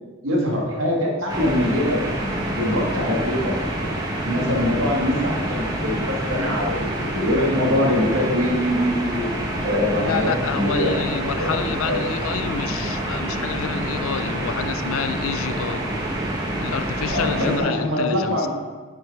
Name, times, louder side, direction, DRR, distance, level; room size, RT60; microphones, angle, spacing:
voice 1, 0.2-2.0 2.6-3.5 4.2-9.3 9.6-12.0 17.1-18.5, left 1 dB, 80° right, 1.9 m, -23 dB
sound 1, 1.3-17.6, right 1 dB, 20° right, 1.3 m, -27 dB
voice 2, 10.0-15.9 16.6-18.5, left 7 dB, 80° left, 0.4 m, -28 dB
9.5 x 4.9 x 4.6 m
head